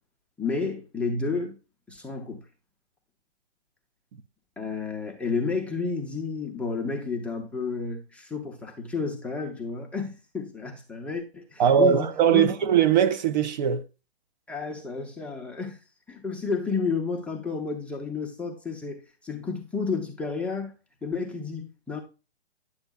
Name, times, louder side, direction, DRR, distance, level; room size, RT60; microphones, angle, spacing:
voice 1, 0.4-1.6 1.9-2.4 4.6-12.5 14.5-15.8 16.1-20.7 21.0-22.0, left 4 dB, 5° left, 0.5 m, -31 dB
voice 2, 11.6-13.9, right 8 dB, 45° right, 0.6 m, -20 dB
9.8 x 7.0 x 2.2 m
hypercardioid pair, 135°, 32 cm